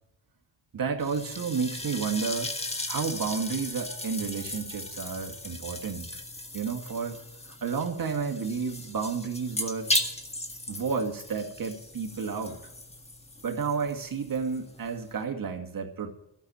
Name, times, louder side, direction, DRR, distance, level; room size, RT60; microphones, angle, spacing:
voice 1, 0.7-2.5 2.9-6.1 6.5-9.9 10.7-12.6 13.4-16.1, right 5 dB, 45° right, 3 dB, 2.2 m, -31 dB
sound 1, 1.0-15.2, left 1 dB, 15° left, 1.7 m, -37 dB
13.0 x 7.2 x 9.9 m, 0.82 s
cardioid pair, 80°, 46 cm